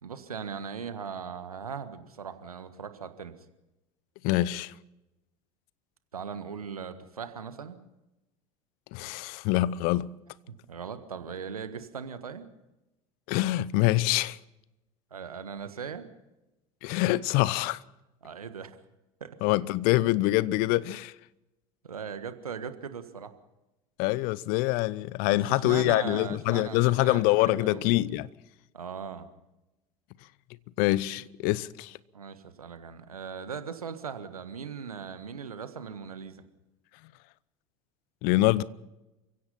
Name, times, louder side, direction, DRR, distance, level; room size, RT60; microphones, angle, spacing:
voice 1, 0.0-3.3 6.1-7.8 10.5-12.5 15.1-16.1 18.2-18.8 19.2-19.3 21.8-23.3 25.3-28.0 28.7-29.3 32.1-36.4, right 6 dB, 85° right, 1.6 m, -39 dB
voice 2, 4.2-4.7 8.9-10.1 13.3-14.4 16.8-17.8 19.4-21.1 24.0-28.3 30.8-32.0 38.2-38.6, left 18 dB, 55° left, 0.8 m, -25 dB
28.5 x 16.0 x 5.7 m
figure-of-eight pair, 70°, 18 cm